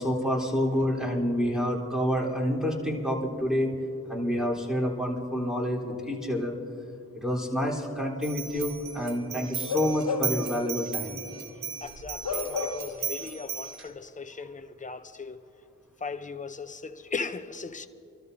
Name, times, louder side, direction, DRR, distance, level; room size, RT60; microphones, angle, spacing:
voice 1, 0.0-3.7 4.1-6.6 7.1-11.2, equal, ahead, -4 dB, 4.0 m, -28 dB
sound 1, 8.2-13.9, right 7 dB, 85° right, 0.9 m, -36 dB
Bark / Livestock farm animals working animals, 9.6-10.5 10.9-11.1 12.2-13.1 13.4-13.5, left 5 dB, 65° left, 1.2 m, -32 dB
voice 2, 11.8-15.4 16.0-17.9, left 4 dB, 20° left, 9 dB, 0.7 m, -38 dB
27.5 x 13.0 x 2.8 m, 2.7 s
cardioid pair, 40°, 34 cm